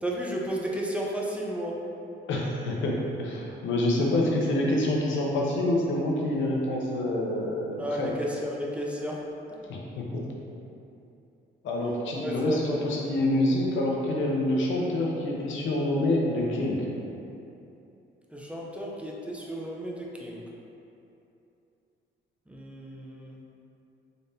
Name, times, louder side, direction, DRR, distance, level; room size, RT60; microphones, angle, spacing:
voice 1, 0.0-1.8 7.8-9.2 12.2-12.9 18.3-20.4 22.5-23.4, right 1 dB, 5° right, -3 dB, 0.5 m, -33 dB
voice 2, 2.3-8.1 9.7-10.2 11.6-16.9, left 1 dB, 75° left, -2 dB, 0.7 m, -27 dB
3.9 x 3.4 x 2.7 m, 2.8 s
cardioid pair, 90°, 20 cm